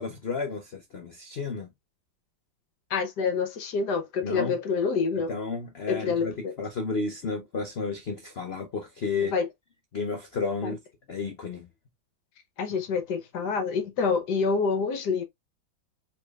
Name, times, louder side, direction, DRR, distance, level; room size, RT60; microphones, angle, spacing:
voice 1, 0.0-1.7 4.2-4.6 5.3-9.3 9.9-10.8 11.1-11.7, left 4 dB, 85° left, 0.5 m, -32 dB
voice 2, 2.9-5.3 5.9-6.6 9.3-9.5 10.6-10.8 12.6-15.2, left 5 dB, 65° left, 1.4 m, -27 dB
5.0 x 4.3 x 2.4 m
omnidirectional pair, 2.1 m